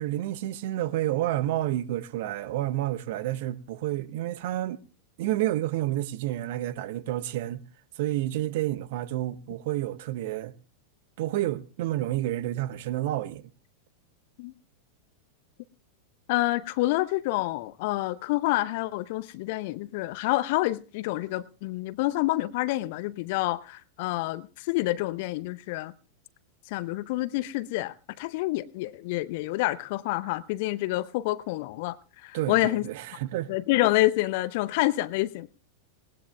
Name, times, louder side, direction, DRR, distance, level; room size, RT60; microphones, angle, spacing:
voice 1, 0.0-4.8 5.2-7.6 8.0-10.5 11.2-13.4 32.3-33.5, right 14 dB, 50° right, 0.8 m, -29 dB
voice 2, 16.3-25.9 26.7-32.0 32.2-32.9 33.5-35.5, left 18 dB, 50° left, 0.6 m, -28 dB
19.5 x 19.0 x 2.2 m
figure-of-eight pair, 90°, 0 cm